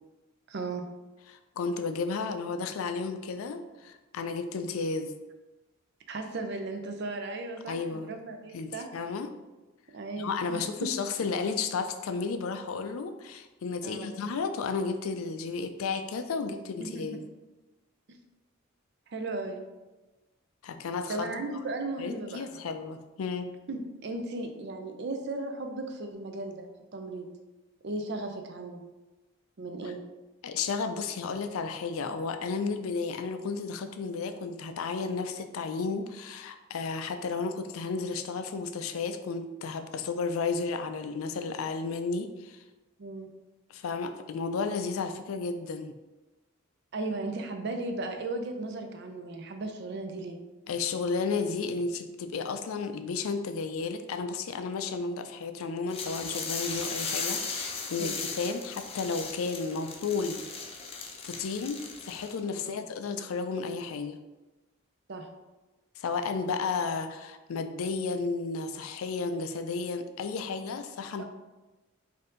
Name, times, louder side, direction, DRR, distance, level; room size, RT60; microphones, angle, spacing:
voice 1, 0.5-0.8 6.1-8.9 9.9-10.9 13.8-14.2 16.8-17.1 18.1-18.2 19.1-19.7 21.1-22.5 23.7-26.7 26.9-27.3 27.8-28.8 29.6-30.0 43.0-43.3 46.9-50.4 58.0-58.2 62.6-62.8 65.1-65.3 71.2-71.3, right 2 dB, 55° right, 5 dB, 0.5 m, -36 dB
voice 2, 1.3-5.1 7.7-8.1 8.5-9.3 10.2-17.3 20.6-21.3 22.0-23.5 30.4-42.6 43.7-45.9 50.7-60.4 61.2-64.2 66.0-71.2, left 4 dB, 90° left, 8 dB, 0.4 m, -33 dB
sound 1, 55.9-62.4, left 4 dB, 30° left, 0.5 m, -37 dB
4.2 x 2.7 x 3.8 m, 1.1 s
head